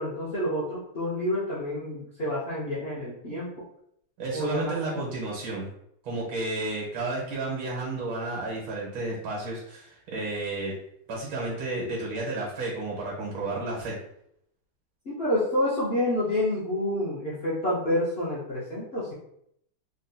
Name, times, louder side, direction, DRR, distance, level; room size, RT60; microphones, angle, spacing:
voice 1, 0.0-3.5 4.3-5.0 15.0-19.1, left 1 dB, 70° left, -9 dB, 0.5 m, -28 dB
voice 2, 4.2-5.7 6.0-10.7 11.1-14.0, right 2 dB, 75° right, -3 dB, 1.7 m, -32 dB
3.8 x 2.6 x 2.2 m, 0.73 s
omnidirectional pair, 2.2 m